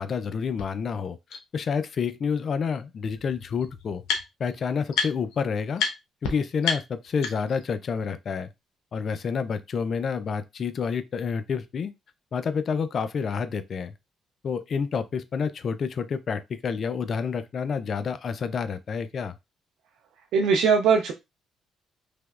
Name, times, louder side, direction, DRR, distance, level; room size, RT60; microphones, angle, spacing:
voice 1, 0.0-4.0 4.4-5.8 6.2-8.5 8.9-11.9 12.3-13.9 14.4-19.3, left 6 dB, 50° left, 0.3 m, -29 dB
sound 1, 0.6-0.7 1.3-1.4 2.7-2.8 3.0-4.5 4.9-5.4 5.8-5.9 6.2-6.3 6.6-7.6, left 6 dB, 90° left, 0.7 m, -30 dB
voice 2, 20.3-21.1, right 5 dB, 85° right, 0.4 m, -20 dB
3.3 x 2.9 x 2.3 m
cardioid pair, 90°, 0 cm